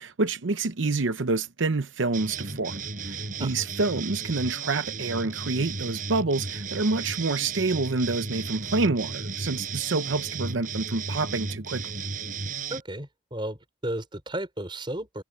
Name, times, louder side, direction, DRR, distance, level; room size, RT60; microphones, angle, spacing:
voice 1, 0.0-11.9, right 3 dB, 85° right, 0.8 m, -27 dB
sound 1, 2.1-12.8, right 4 dB, 45° right, 5.7 m, -34 dB
voice 2, 12.7-15.2, right 1 dB, 25° right, 4.7 m, -34 dB
head